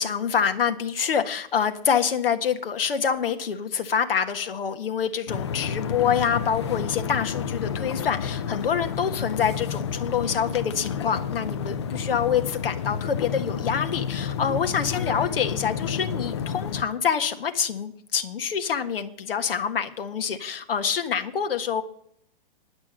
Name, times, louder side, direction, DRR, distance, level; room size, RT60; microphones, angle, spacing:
voice 1, 0.0-21.8, left 7 dB, 70° left, 8 dB, 1.5 m, -26 dB
sound 1, 5.3-16.8, left 7 dB, 30° left, 0.5 m, -30 dB
11.0 x 6.1 x 8.6 m, 0.68 s
hypercardioid pair, 165°, 30 cm